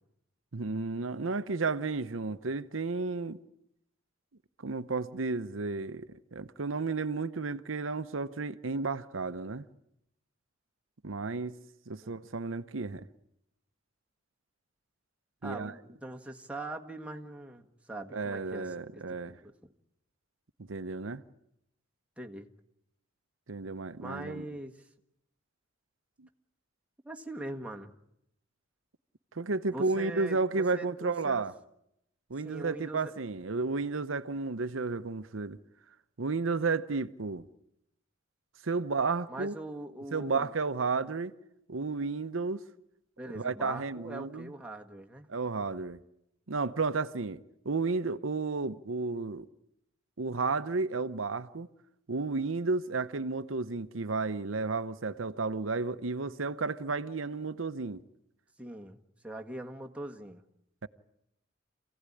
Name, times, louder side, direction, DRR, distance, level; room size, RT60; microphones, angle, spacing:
voice 1, 0.5-3.4 4.6-9.7 11.0-11.6 11.9-13.1 15.4-15.7 18.1-19.4 20.6-21.2 23.5-24.5 29.3-31.5 32.3-35.6 36.2-37.4 38.6-39.5 40.1-41.3 41.7-42.6 43.3-44.5 45.3-46.0 46.5-49.5 50.2-51.7 52.1-58.0 60.8-60.9, right 4 dB, 80° right, 0.9 m, -32 dB
voice 2, 15.4-19.0 19.4-19.5 22.2-22.5 24.0-24.9 27.0-27.9 29.7-31.5 32.4-33.1 39.3-40.5 43.2-45.3 58.6-59.0 59.2-60.4, right 2 dB, 5° right, 1.6 m, -42 dB
27.5 x 16.5 x 9.9 m
head